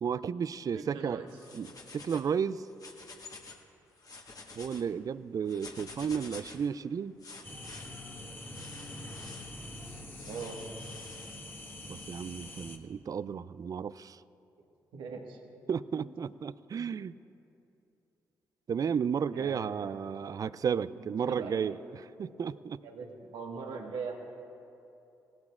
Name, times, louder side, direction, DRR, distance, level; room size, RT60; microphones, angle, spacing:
voice 1, 0.0-1.2 1.5-1.7 1.9-2.6 4.6-7.2 11.9-14.2 15.7-17.1 18.7-21.8 22.2-22.8, right 7 dB, 45° right, 17 dB, 0.3 m, -33 dB
voice 2, 0.7-1.3 10.2-10.6 14.9-15.4 16.0-16.1 16.7-16.9 19.3-20.0 20.8-21.7 22.5-24.1, right 5 dB, 75° right, 1 dB, 1.5 m, -42 dB
sound 1, 1.3-2.3 2.7-3.6 3.9-4.8 5.5-6.7 7.2-7.9 8.5-9.5 10.1-11.4, left 3 dB, 45° left, 1.5 m, -49 dB
sound 2, 7.4-12.8, left 1 dB, 25° left, 1.3 m, -44 dB
18.5 x 13.5 x 2.4 m, 2.8 s
hypercardioid pair, 40°, 8 cm